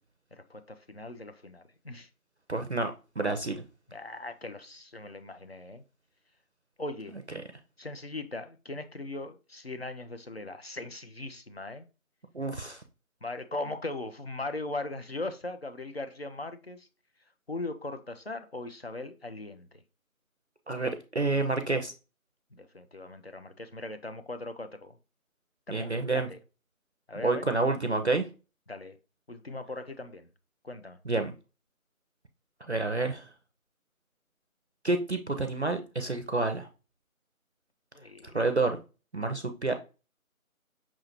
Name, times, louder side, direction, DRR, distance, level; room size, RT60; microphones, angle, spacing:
voice 1, 0.3-2.1 3.9-5.8 6.8-7.2 7.8-11.9 13.2-16.9 17.5-19.8 22.5-25.0 25.7-26.4 27.1-27.5 28.7-29.0 29.3-30.3 30.6-31.0 37.9-38.4, left 2 dB, 45° left, 0.5 m, -39 dB
voice 2, 2.5-3.6 12.3-12.8 20.7-21.9 25.7-26.3 27.1-28.3 31.1-31.3 32.6-33.3 34.8-36.7 38.3-38.8 39.1-39.7, right 3 dB, 50° right, 0.5 m, -29 dB
5.8 x 2.6 x 2.8 m
figure-of-eight pair, 170°, 42 cm